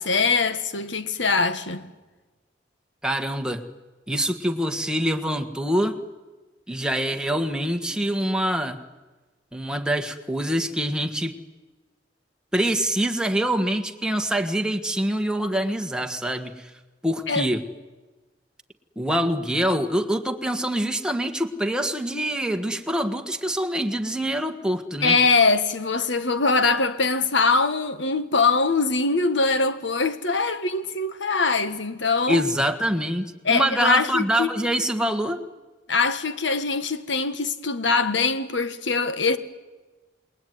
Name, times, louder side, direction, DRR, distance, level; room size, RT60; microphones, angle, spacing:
voice 1, 0.0-1.9 17.3-17.5 25.0-32.4 33.4-34.5 35.9-39.4, left 4 dB, 75° left, 1.8 m, -22 dB
voice 2, 3.0-3.6 4.1-6.0 6.7-8.8 9.5-11.3 12.5-16.7 17.0-17.6 18.9-25.2 32.3-35.4, equal, 5° right, 1.7 m, -25 dB
28.5 x 21.0 x 9.5 m
head